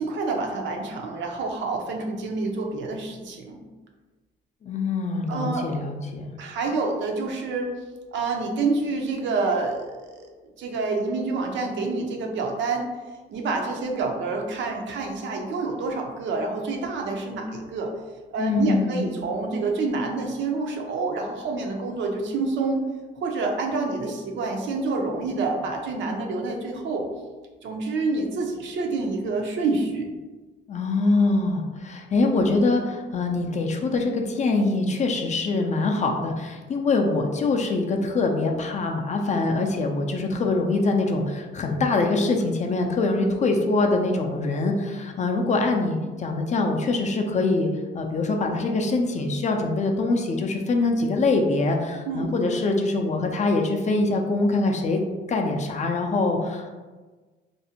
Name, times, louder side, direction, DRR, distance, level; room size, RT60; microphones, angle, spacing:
voice 1, 0.0-3.6 5.3-5.7 6.4-7.7 8.1-10.3 10.6-12.9 13.3-17.9 18.3-22.9 23.2-27.0 27.6-30.1 52.1-52.3, right 3 dB, 70° right, 2 dB, 0.5 m, -27 dB
voice 2, 4.6-6.3 18.4-19.1 30.7-47.7 47.9-55.0 55.3-56.7, left 3 dB, 35° left, 2 dB, 0.4 m, -24 dB
2.5 x 2.0 x 2.7 m, 1.3 s
cardioid pair, 90°, 20 cm